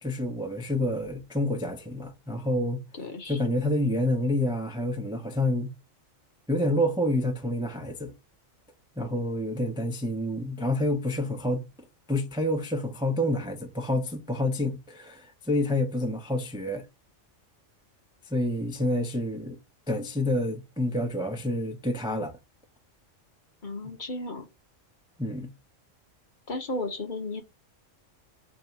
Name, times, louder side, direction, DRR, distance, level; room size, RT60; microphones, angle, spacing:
voice 1, 0.0-2.8 3.3-5.7 6.5-8.1 9.0-11.7 12.1-16.9 18.3-19.6 19.9-22.4 25.2-25.5, left 1 dB, 5° right, 0.3 m, -28 dB
voice 2, 2.9-3.4 23.6-24.5 26.5-27.4, left 2 dB, 45° left, 1.0 m, -34 dB
3.9 x 2.7 x 4.5 m
omnidirectional pair, 1.3 m